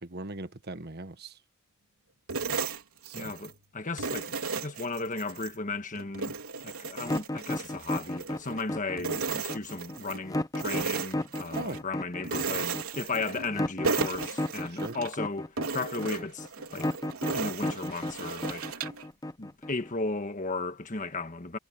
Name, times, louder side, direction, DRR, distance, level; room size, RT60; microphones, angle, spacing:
voice 1, 0.0-1.4 3.0-3.3 11.5-11.8 14.7-15.0, right 2 dB, 50° right, 1.3 m, -39 dB
sound 1, 2.3-3.6 4.0-5.6 6.0-8.7 9.0-10.2 10.6-11.8 12.2-13.6 13.8-15.2 15.6-19.0, right 4 dB, 80° right, 3.8 m, -35 dB
voice 2, 3.1-6.4 6.6-16.5 16.7-16.9 17.3-18.8 19.4-21.6, left 3 dB, 35° left, 1.5 m, -35 dB
sound 2, 7.0-19.9, left 1 dB, 15° left, 0.8 m, -33 dB
head